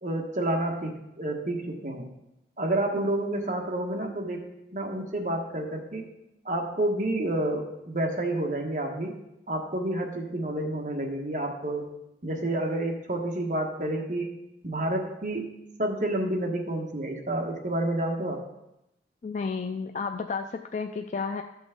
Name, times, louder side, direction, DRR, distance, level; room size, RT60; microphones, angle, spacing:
voice 1, 0.0-2.1 2.6-4.4 4.7-6.1 6.4-9.2 9.5-11.9 12.2-14.3 14.6-15.5 15.8-18.4, right 1 dB, 45° right, 1 dB, 1.3 m, -29 dB
voice 2, 19.2-21.4, left 5 dB, 40° left, 6 dB, 0.3 m, -32 dB
12.5 x 6.2 x 3.6 m, 0.86 s
head